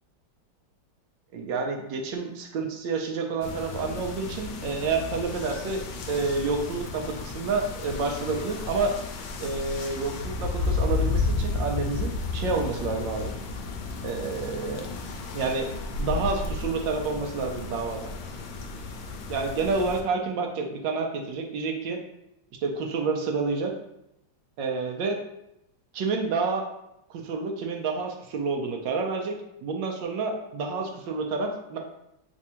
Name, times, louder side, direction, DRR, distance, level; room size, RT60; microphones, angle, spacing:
voice 1, 1.3-8.9 9.4-13.3 14.0-14.9 15.3-15.7 16.0-18.0 19.3-22.0 22.6-23.7 24.6-25.2 25.9-26.6 27.2-31.8, right 4 dB, 75° right, 2 dB, 1.2 m, -29 dB
sound 1, 3.4-20.0, left 3 dB, 75° left, 1.1 m, -32 dB
3.5 x 2.6 x 4.2 m, 0.83 s
omnidirectional pair, 2.2 m